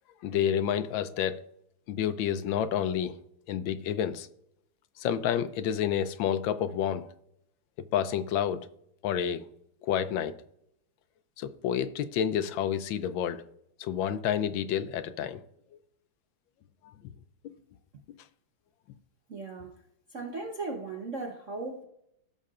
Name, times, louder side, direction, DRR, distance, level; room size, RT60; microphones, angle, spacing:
voice 1, 0.2-1.4 1.9-3.2 3.5-4.3 5.0-7.1 7.9-8.7 9.0-9.5 9.8-10.4 11.4-13.4 13.8-15.4, left 9 dB, 75° left, 1.3 m, -29 dB
voice 2, 19.3-19.7 20.1-21.9, right 3 dB, 45° right, 1.1 m, -37 dB
16.5 x 6.6 x 2.5 m
omnidirectional pair, 2.3 m